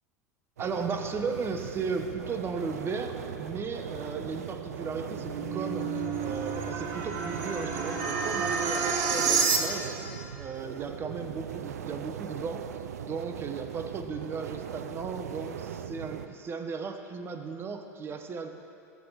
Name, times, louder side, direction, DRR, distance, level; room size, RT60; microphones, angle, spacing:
voice 1, 0.6-10.0 10.4-12.7 13.0-18.5, right 5 dB, 25° right, 6 dB, 0.7 m, -36 dB
sound 1, 0.6-16.3, right 8 dB, 70° right, 0.4 m, -40 dB
sound 2, 4.9-10.1, right 5 dB, 45° right, 1.0 m, -29 dB
14.0 x 7.6 x 2.4 m, 2.8 s
figure-of-eight pair, 75°, 9 cm